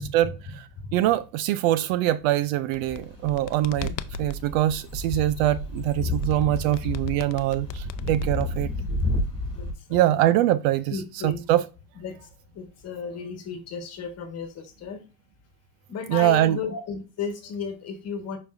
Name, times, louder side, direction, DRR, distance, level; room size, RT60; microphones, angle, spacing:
voice 1, 0.2-0.5 0.8-1.0 3.8-4.0 5.2-5.4 8.4-8.5 8.8-9.1 9.5-10.2 10.9-11.4 11.9-12.3 12.5-15.0 15.9-18.4, left 5 dB, 30° left, 1.6 m, -35 dB
voice 2, 0.9-3.9 4.2-8.7 9.9-11.0 11.2-11.6 16.1-16.6, right 14 dB, 55° right, 0.5 m, -23 dB
sound 1, 2.6-4.4 6.2-8.8, left 12 dB, 85° left, 0.6 m, -40 dB
sound 2, 2.8-9.7, left 1 dB, 10° left, 2.6 m, -31 dB
7.1 x 5.3 x 2.6 m
supercardioid pair, 125°, 48 cm